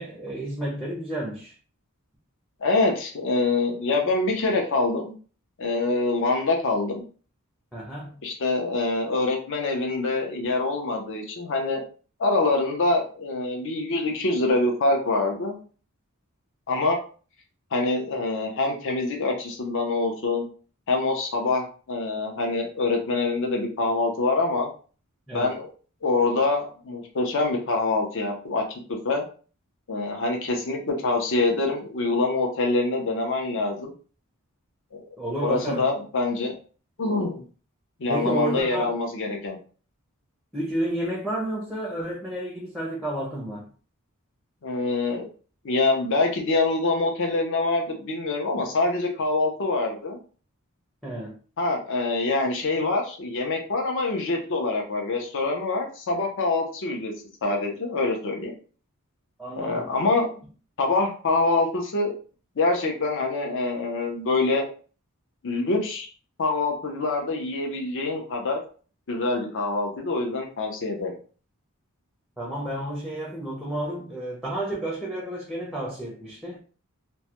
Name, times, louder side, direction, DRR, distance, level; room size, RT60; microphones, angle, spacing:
voice 1, 0.0-1.6 7.7-8.2 25.3-25.5 35.2-35.8 38.1-38.9 40.5-43.7 51.0-51.4 59.4-59.9 72.4-76.6, right 1 dB, ahead, 0.5 m, -31 dB
voice 2, 2.6-5.1 5.6-7.0 8.2-11.8 12.2-15.6 16.7-17.0 17.7-20.5 20.9-24.7 25.3-25.7 26.0-28.6 28.9-29.2 29.9-33.9 34.9-35.0 35.4-36.5 37.0-37.4 38.0-39.6 44.6-45.2 45.6-50.2 51.6-57.1 57.4-58.5 59.6-60.3 60.8-62.1 62.6-64.7 65.4-66.1 66.4-68.6 69.1-71.1, left 3 dB, 60° left, 0.6 m, -25 dB
2.2 x 2.1 x 2.8 m
head